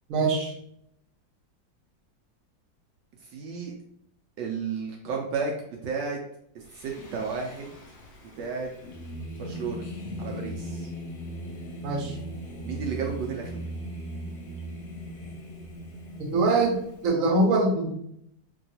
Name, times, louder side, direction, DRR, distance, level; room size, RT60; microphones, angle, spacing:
voice 1, 0.1-0.5 11.8-12.2 16.3-17.9, right 2 dB, 55° right, -1 dB, 1.1 m, -23 dB
voice 2, 3.3-3.7 4.4-5.5 5.8-6.2 6.8-7.7 8.4-8.7 9.4-9.8 10.2-10.8 12.6-13.7, right 5 dB, 75° right, 0 dB, 1.2 m, -32 dB
Singing, 6.7-17.1, equal, 65° left, 1.0 m, -39 dB
2.9 x 2.7 x 2.7 m, 0.70 s
omnidirectional pair, 2.0 m